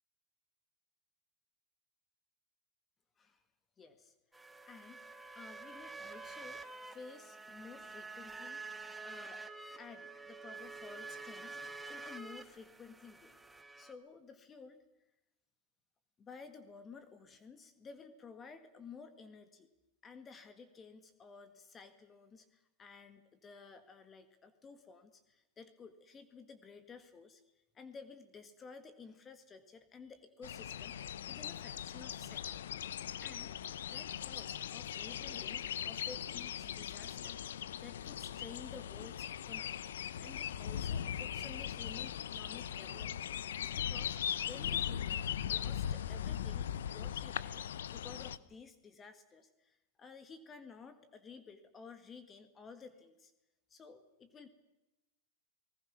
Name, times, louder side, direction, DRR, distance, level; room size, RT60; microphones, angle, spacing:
voice 1, 3.8-4.1 4.7-5.0 5.4-8.7 9.0-9.4 9.8-11.6 11.9-14.8 16.2-19.7 20.0-32.6 33.2-33.6 33.9-37.4 37.8-39.8 40.2-43.3 43.7-47.7 47.9-53.3 53.7-54.5, left 5 dB, 20° left, 10 dB, 1.7 m, -53 dB
sound 1, 4.3-13.9, right 3 dB, 5° right, 1.6 m, -48 dB
sound 2, 30.4-48.4, left 9 dB, 90° left, 0.9 m, -39 dB
29.0 x 19.5 x 6.2 m, 0.95 s
supercardioid pair, 130°, 0 cm